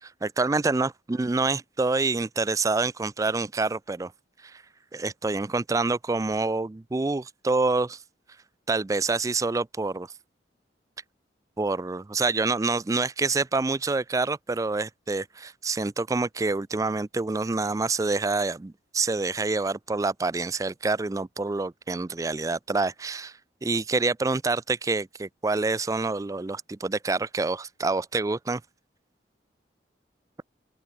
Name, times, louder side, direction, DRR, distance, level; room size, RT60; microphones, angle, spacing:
voice 1, 0.0-4.1 4.4-4.6 4.9-8.0 8.7-10.1 11.6-23.3 23.6-28.6, right 3 dB, 20° right, 0.4 m, -27 dB
open air
head